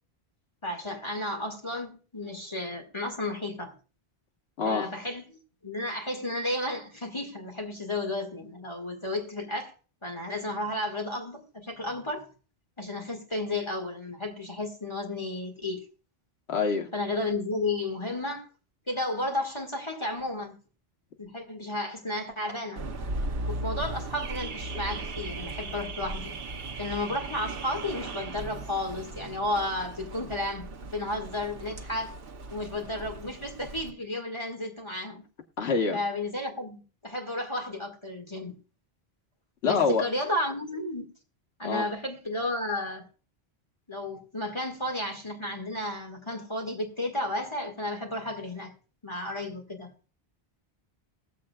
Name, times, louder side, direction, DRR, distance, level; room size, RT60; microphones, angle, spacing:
voice 1, 0.6-3.8 4.6-9.7 10.0-12.3 12.8-15.9 16.9-18.5 18.9-20.5 21.2-22.8 23.5-26.3 26.8-32.2 32.5-35.2 35.9-38.5 39.6-41.1 41.6-43.0 43.9-48.7 49.0-49.9, left 1 dB, 25° left, 2.0 m, -33 dB
voice 2, 4.6-4.9 16.5-16.9 35.6-36.0 39.6-40.1 41.6-41.9, left 4 dB, 80° left, 1.4 m, -25 dB
Car / Alarm, 22.8-33.9, right 2 dB, 65° right, 1.1 m, -37 dB
21.0 x 7.5 x 2.3 m
omnidirectional pair, 1.1 m